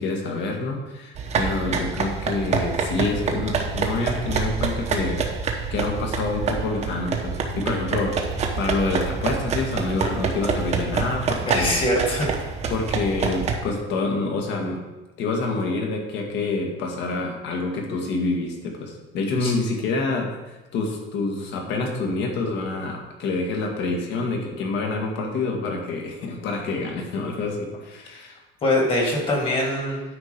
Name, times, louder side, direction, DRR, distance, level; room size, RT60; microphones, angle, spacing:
voice 1, 0.0-5.2 5.7-11.9 12.7-14.8 15.2-28.4, left 3 dB, 55° left, 1 dB, 1.9 m, -27 dB
sound 1, 1.1-13.6, right 5 dB, 30° right, 1.0 m, -26 dB
voice 2, 11.4-12.3 19.4-19.5 28.6-30.0, left 1 dB, 25° left, 0 dB, 1.9 m, -23 dB
9.6 x 4.4 x 6.8 m, 1.1 s
cardioid pair, 170°, 21 cm